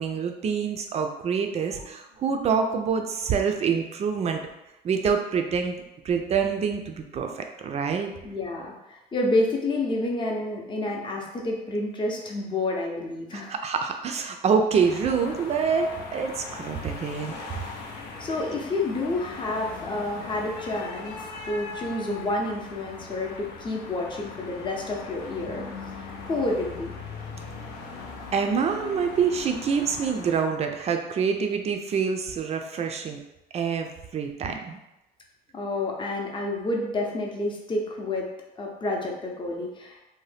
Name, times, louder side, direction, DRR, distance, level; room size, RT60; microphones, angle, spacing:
voice 1, 0.0-4.4 4.8-5.8 6.0-8.1 13.3-17.3 28.3-33.2 33.5-34.8, right 6 dB, 40° right, 5 dB, 0.4 m, -26 dB
voice 2, 8.2-13.5 18.2-25.7 26.0-26.9 35.5-38.3 38.6-40.0, left 2 dB, 30° left, 0 dB, 0.6 m, -29 dB
sound 1, 14.7-30.4, left 4 dB, 85° left, 0.5 m, -40 dB
2.7 x 2.1 x 3.3 m, 0.94 s
cardioid pair, 110°, 17 cm